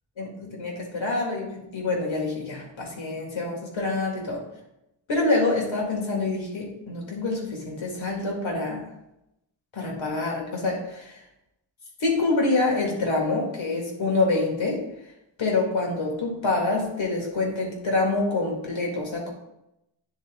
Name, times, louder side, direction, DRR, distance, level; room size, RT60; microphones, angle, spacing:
voice 1, 0.2-4.4 5.1-8.9 9.7-11.1 12.0-14.8 15.4-19.3, left 3 dB, 80° left, -1 dB, 2.1 m, -26 dB
9.6 x 4.0 x 3.7 m, 0.86 s
wide cardioid pair, 145°, 46 cm